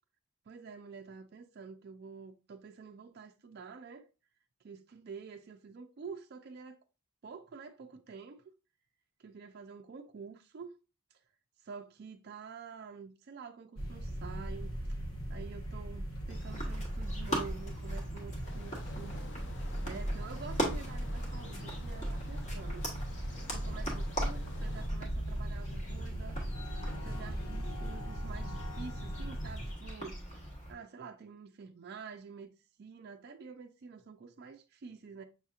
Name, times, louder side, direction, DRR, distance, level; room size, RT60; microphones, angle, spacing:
voice 1, 0.5-4.1 4.6-6.8 7.2-8.4 9.2-10.8 11.1-11.2 11.6-15.0 15.3-19.2 19.5-22.9 23.1-26.4 27.0-32.5 32.8-35.2, right 5 dB, 45° right, 0.3 m, -48 dB
sound 1, 13.8-29.7, right 1 dB, 80° left, 1.3 m, -39 dB
sound 2, 16.3-30.7, equal, 30° left, 1.1 m, -41 dB
sound 3, 18.4-24.9, left 2 dB, 55° left, 0.6 m, -52 dB
6.1 x 2.8 x 2.4 m
head